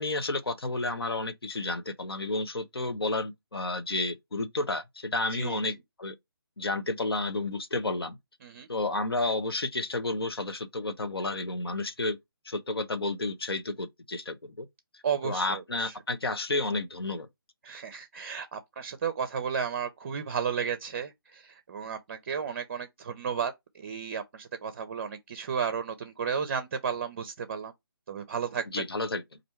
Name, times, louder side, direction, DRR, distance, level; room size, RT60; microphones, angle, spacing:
voice 1, 0.0-6.2 6.6-8.2 8.7-12.2 12.4-14.7 14.9-17.3 28.7-29.4, left 2 dB, 80° left, 0.8 m, -31 dB
voice 2, 15.0-15.9 17.6-27.7 28.1-28.6, right 7 dB, 35° right, 0.5 m, -33 dB
4.3 x 2.6 x 4.3 m
figure-of-eight pair, 150°, 13 cm